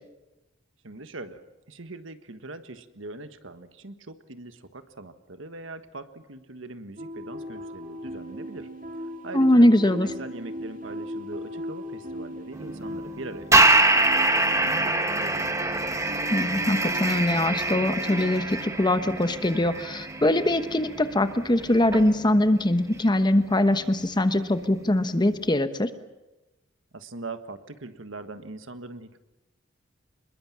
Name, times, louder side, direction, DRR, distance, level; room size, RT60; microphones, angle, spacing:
voice 1, 0.8-1.4 1.7-8.7 9.2-15.5 26.9-29.2, right 2 dB, 75° right, 9 dB, 1.5 m, -41 dB
sound 1, 7.0-18.3, equal, 45° right, 2.4 m, -38 dB
voice 2, 9.3-10.1 16.3-25.9, left 1 dB, 20° left, 10 dB, 1.1 m, -22 dB
sound 2, 12.5-25.5, right 2 dB, 15° right, 1.3 m, -26 dB
26.0 x 21.5 x 7.5 m, 1.0 s
head